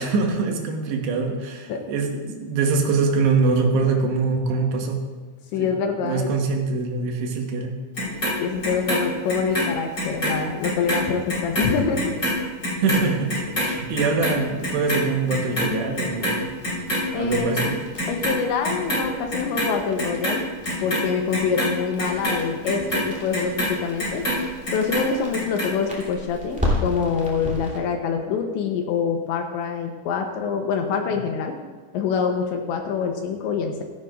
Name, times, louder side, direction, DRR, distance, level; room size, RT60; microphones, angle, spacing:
voice 1, 0.0-5.0 5.6-5.7 6.0-7.8 12.8-16.4 17.2-17.8, right 4 dB, 70° right, 2 dB, 3.2 m, -23 dB
voice 2, 5.5-6.3 8.4-12.1 17.1-17.6 18.1-20.4 20.8-24.2 24.7-31.6 31.9-33.8, left 6 dB, 80° left, 4 dB, 3.0 m, -25 dB
Clock, 8.0-10.4 10.6-17.0 17.3-18.4 18.6-19.7 20.0-24.4 24.7-25.7 26.0-26.1, equal, 20° left, 4.4 m, -26 dB
sound 1, 16.4-27.8, left 1 dB, 5° right, 1.6 m, -34 dB
16.5 x 14.0 x 2.5 m, 1.4 s
omnidirectional pair, 5.6 m